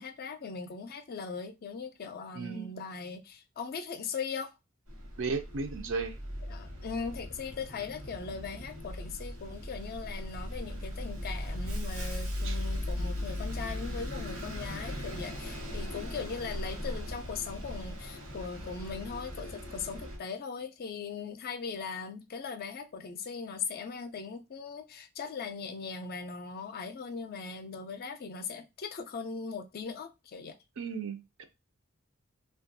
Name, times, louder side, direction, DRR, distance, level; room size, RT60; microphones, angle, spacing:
voice 1, 0.0-4.5 6.5-30.6, left 5 dB, 45° left, 0.4 m, -39 dB
voice 2, 2.3-2.7 5.2-6.2 12.4-12.6 30.8-31.4, right 4 dB, 65° right, 0.5 m, -35 dB
Bus, 4.9-20.2, left 1 dB, 80° right, 1.1 m, -38 dB
2.8 x 2.3 x 2.6 m
head